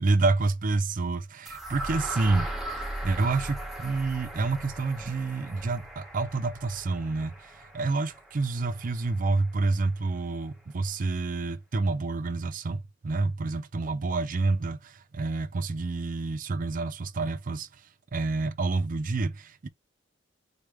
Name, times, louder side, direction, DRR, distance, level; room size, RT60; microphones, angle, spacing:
voice 1, 0.0-2.5 2.7-17.8 18.1-19.7, right 3 dB, 45° right, 0.5 m, -28 dB
sound 1, 1.5-9.4, right 1 dB, ahead, 1.0 m, -38 dB
4.3 x 3.4 x 3.1 m
head